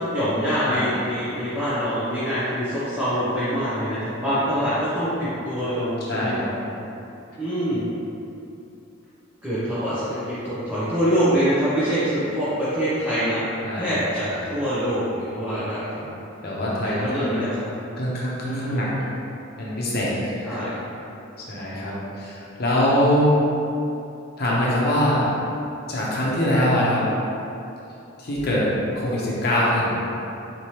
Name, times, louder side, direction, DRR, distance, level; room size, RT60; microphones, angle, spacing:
voice 1, 0.0-6.3 6.6-6.7 7.4-7.8 9.4-13.4 13.8-15.9 16.8-17.6 18.4-18.8 20.4-20.8, equal, 10° right, -14 dB, 0.8 m, -25 dB
voice 2, 6.1-6.5 13.6-13.9 14.3-14.5 16.4-17.3 18.0-18.9 19.6-20.6 21.5-23.4 24.4-25.3 25.9-27.1 28.2-28.7 28.9-30.0, left 1 dB, 50° left, -6 dB, 0.8 m, -23 dB
4.3 x 3.3 x 2.9 m, 2.8 s
head